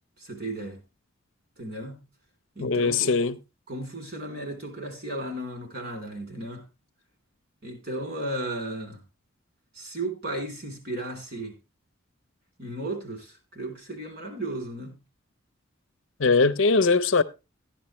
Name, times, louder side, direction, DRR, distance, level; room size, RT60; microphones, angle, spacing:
voice 1, 0.2-0.8 1.6-2.0 2.6-3.1 3.7-6.6 7.6-9.0 9.7-11.5 12.6-15.0, right 1 dB, 50° right, 3.4 m, -35 dB
voice 2, 2.6-3.4 16.2-17.2, left 4 dB, 65° left, 0.6 m, -21 dB
13.0 x 10.0 x 3.1 m
head